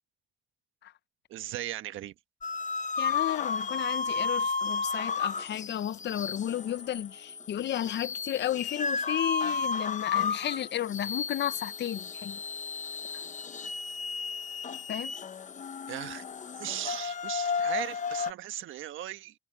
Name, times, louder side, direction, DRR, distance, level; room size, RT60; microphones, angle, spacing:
voice 1, 1.3-2.1 15.9-16.2 16.6-19.3, right 13 dB, 85° right, 1.3 m, -37 dB
sound 1, 2.4-18.3, left 5 dB, 40° left, 1.1 m, -33 dB
voice 2, 3.0-12.4 14.9-15.2, left 11 dB, 60° left, 0.8 m, -33 dB
cardioid pair, 90°, 20 cm